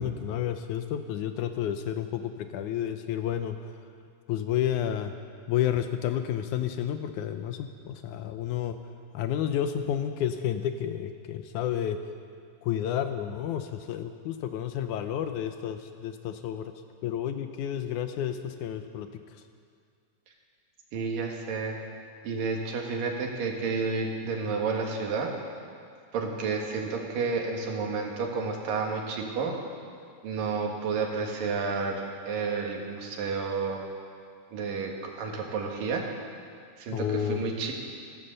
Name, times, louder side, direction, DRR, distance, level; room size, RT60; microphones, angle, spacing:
voice 1, 0.0-3.6 4.3-5.1 5.5-8.8 9.1-12.0 12.6-16.7 17.0-19.1 36.9-37.4, left 10 dB, 75° left, 8 dB, 2.0 m, -30 dB
voice 2, 20.9-21.8 22.2-25.3 26.1-29.5 30.2-33.8 34.5-36.1 36.8-37.7, right 4 dB, 85° right, 1 dB, 3.4 m, -31 dB
15.0 x 14.5 x 6.6 m, 2.2 s
omnidirectional pair, 3.8 m